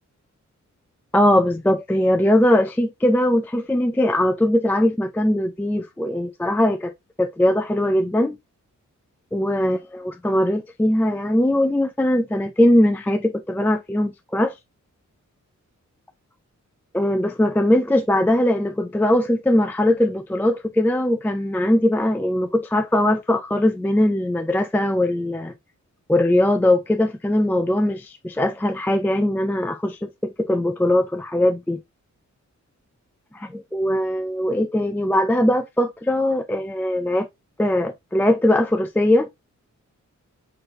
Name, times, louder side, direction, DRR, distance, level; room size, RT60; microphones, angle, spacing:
voice 1, 1.1-6.9 7.2-8.4 9.3-14.5 16.9-25.5 26.1-31.8 33.3-37.3 37.6-39.3, left 1 dB, 5° left, 0.3 m, -20 dB
4.2 x 3.9 x 2.4 m
wide cardioid pair, 120°, 30 cm